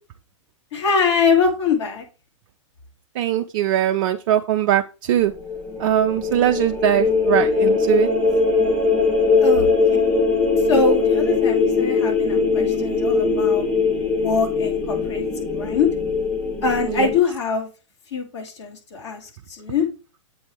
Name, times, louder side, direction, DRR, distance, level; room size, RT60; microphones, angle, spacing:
voice 1, 0.7-2.0 9.4-9.7 10.7-13.6 14.1-15.3 15.5-15.9 16.6-17.7 18.1-19.9, left 5 dB, 60° left, 1 dB, 2.4 m, -23 dB
voice 2, 3.2-5.3 5.8-8.1 16.9-17.1, right 12 dB, 45° right, 5 dB, 0.4 m, -21 dB
sound 1, 5.2-17.2, left 4 dB, 10° left, 1.1 m, -20 dB
7.6 x 3.4 x 4.5 m, 0.32 s
figure-of-eight pair, 110°, 17 cm